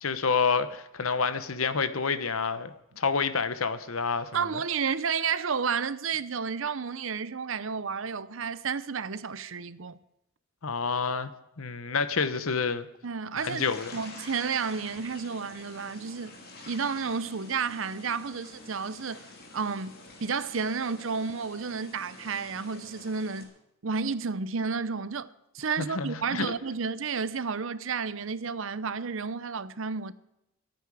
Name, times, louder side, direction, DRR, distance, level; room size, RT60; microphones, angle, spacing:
voice 1, 0.0-4.6 10.6-12.9 13.4-14.0 25.8-26.5, left 5 dB, 75° left, 1.0 m, -29 dB
voice 2, 4.3-10.0 13.0-13.6 13.9-16.4 16.7-19.3 19.5-19.9 20.2-23.5 23.8-30.1, right 5 dB, 65° right, 0.7 m, -31 dB
sound 1, 13.4-23.4, left 2 dB, 45° left, 3.1 m, -47 dB
25.5 x 9.1 x 4.9 m
head